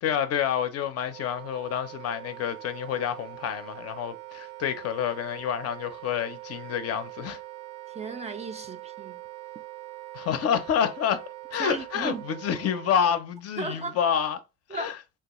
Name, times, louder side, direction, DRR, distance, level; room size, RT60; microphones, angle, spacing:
voice 1, 0.0-7.4 10.1-14.4 14.7-14.9, left 8 dB, 50° left, 0.5 m, -28 dB
Wind instrument woodwind instrument, 1.0-13.0, right 17 dB, 85° right, 0.6 m, -43 dB
voice 2, 7.9-9.2 11.6-12.2 13.6-14.0 14.7-14.9, right 3 dB, 20° right, 0.4 m, -35 dB
3.3 x 2.3 x 2.9 m
supercardioid pair, 80°, 31 cm